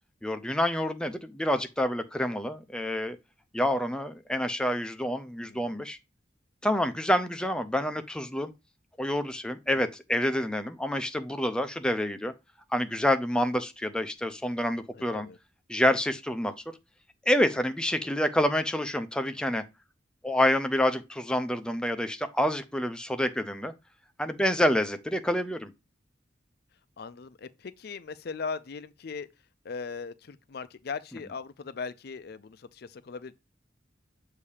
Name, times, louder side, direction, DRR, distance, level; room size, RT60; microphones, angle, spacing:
voice 1, 0.2-3.2 3.5-6.0 6.6-8.5 9.0-12.3 12.7-15.3 15.7-16.5 17.3-19.6 20.2-23.7 24.2-25.7, left 1 dB, 5° left, 0.5 m, -27 dB
voice 2, 5.4-5.8 14.9-15.4 27.0-29.3 29.6-33.3, left 5 dB, 60° left, 0.5 m, -39 dB
7.0 x 2.8 x 4.9 m
head